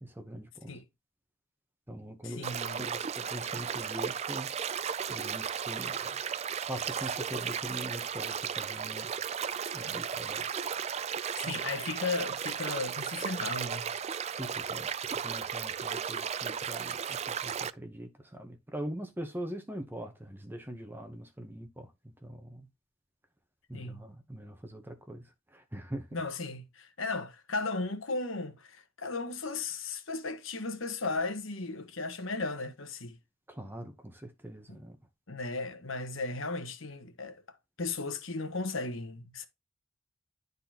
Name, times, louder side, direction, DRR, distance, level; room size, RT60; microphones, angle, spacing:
voice 1, 0.0-0.8 1.9-4.5 5.1-6.2 6.7-9.1 9.7-10.5 11.4-11.6 14.3-22.7 23.7-26.1 33.5-35.0, right 1 dB, 10° right, 0.9 m, -42 dB
voice 2, 2.2-2.9 9.8-10.0 11.4-13.9 23.7-24.0 26.1-33.2 34.7-34.8 35.3-37.4 37.8-39.5, left 3 dB, 70° left, 1.3 m, -36 dB
sound 1, 2.4-17.7, right 7 dB, 30° right, 0.3 m, -35 dB
12.0 x 4.1 x 2.9 m
head